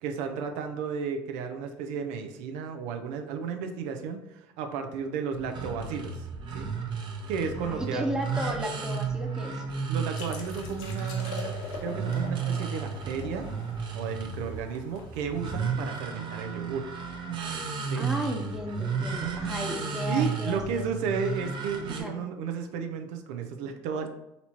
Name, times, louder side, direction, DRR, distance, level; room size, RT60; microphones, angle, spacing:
voice 1, 0.0-6.3 6.5-6.7 7.3-8.1 9.9-13.5 13.9-16.8 17.9-18.1 20.1-24.1, right 6 dB, 80° right, 5 dB, 0.6 m, -33 dB
sound 1, 5.3-22.0, right 5 dB, 45° right, 0.9 m, -33 dB
voice 2, 7.6-9.6 18.0-20.8 21.9-22.2, equal, 5° right, 2 dB, 0.9 m, -34 dB
sound 2, 10.1-15.7, left 3 dB, 75° left, 1.1 m, -43 dB
4.0 x 2.9 x 4.3 m, 0.92 s
supercardioid pair, 100°, 11 cm